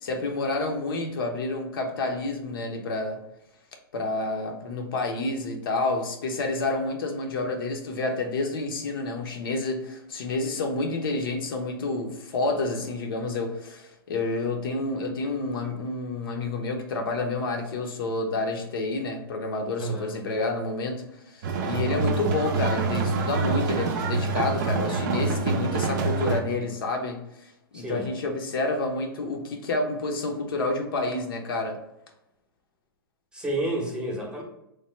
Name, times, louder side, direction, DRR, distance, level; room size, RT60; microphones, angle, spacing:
voice 1, 0.0-3.2 3.9-31.8, left 2 dB, 70° left, 3 dB, 0.6 m, -29 dB
voice 2, 19.8-20.1 25.7-25.9 27.7-28.1 33.3-34.4, right 1 dB, 5° right, -1 dB, 0.7 m, -30 dB
sound 1, 21.4-26.4, right 4 dB, 50° right, 0.4 m, -26 dB
3.1 x 2.1 x 3.1 m, 0.84 s
hypercardioid pair, 115°, 12 cm